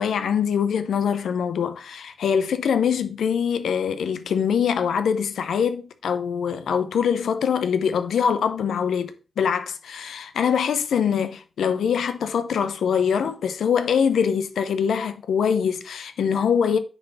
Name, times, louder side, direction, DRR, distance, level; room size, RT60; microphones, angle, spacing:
voice 1, 0.0-16.8, left 7 dB, 85° left, 0.7 m, -23 dB
9.4 x 3.5 x 5.4 m
supercardioid pair, 40°, 0 cm